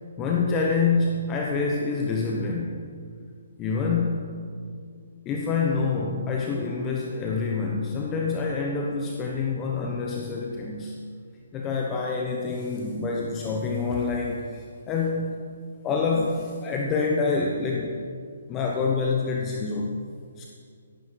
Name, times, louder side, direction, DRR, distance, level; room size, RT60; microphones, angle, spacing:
voice 1, 0.2-3.0 3.6-4.4 5.2-11.0 11.5-15.3 15.8-18.0 18.5-19.9 20.4-20.5, left 4 dB, 20° left, -1 dB, 1.0 m, -27 dB
14.5 x 10.5 x 4.8 m, 2.2 s
hypercardioid pair, 155°, 0 cm